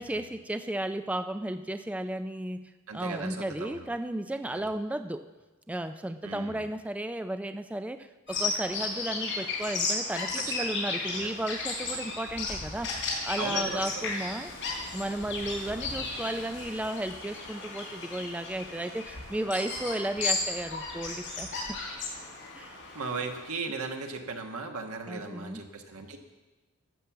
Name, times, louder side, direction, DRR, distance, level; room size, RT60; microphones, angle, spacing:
voice 1, 0.0-5.2 5.7-14.5 14.9-21.7 22.5-22.8 25.1-25.6, right 1 dB, 5° right, 9 dB, 0.3 m, -34 dB
voice 2, 2.9-3.9 4.5-4.6 6.2-6.6 10.4-10.5 11.1-11.3 13.4-14.1 22.9-26.2, right 4 dB, 85° right, 4 dB, 1.4 m, -37 dB
Bird vocalization bird call bird song, 8.3-23.4, left 3 dB, 55° left, 4.2 m, -34 dB
12.0 x 7.5 x 7.1 m, 1.2 s
head